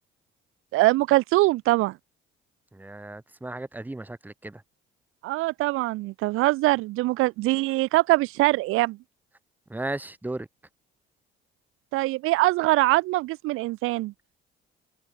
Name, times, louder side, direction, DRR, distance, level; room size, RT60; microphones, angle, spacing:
voice 1, 0.7-2.0 5.2-9.0 11.9-14.1, right 19 dB, 80° right, 0.6 m, -23 dB
voice 2, 2.7-4.6 9.7-10.5, right 2 dB, 10° right, 1.7 m, -35 dB
open air
cardioid pair, 115°, 21 cm